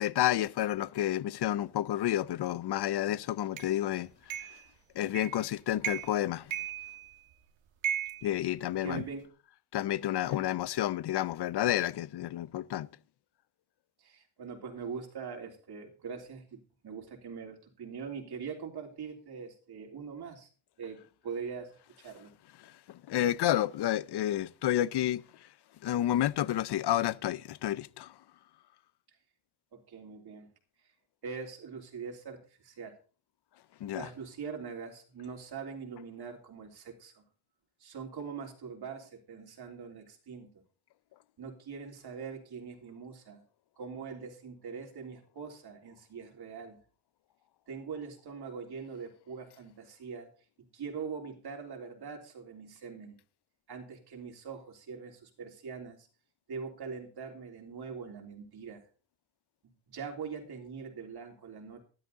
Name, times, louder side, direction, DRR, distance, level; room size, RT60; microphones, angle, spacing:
voice 1, 0.0-4.5 4.9-6.5 8.2-9.0 9.7-12.9 22.6-25.2 25.8-28.1 33.8-34.1, left 12 dB, 60° left, 0.7 m, -30 dB
sound 1, 3.6-3.7 4.3-4.6 5.1-5.4 5.8-6.2 6.5-7.3 7.8-9.1, right 9 dB, 80° right, 1.8 m, -36 dB
voice 2, 8.8-9.3 10.2-10.5 14.0-20.5 20.8-22.3 29.7-30.5 31.2-33.0 33.9-37.2 37.8-40.5 41.4-43.4 43.8-46.8 47.7-50.3 50.6-53.2 53.7-56.1 56.5-58.8 59.9-61.8, right 6 dB, 55° right, 3.4 m, -42 dB
13.0 x 12.0 x 4.1 m
cardioid pair, 145°, 46 cm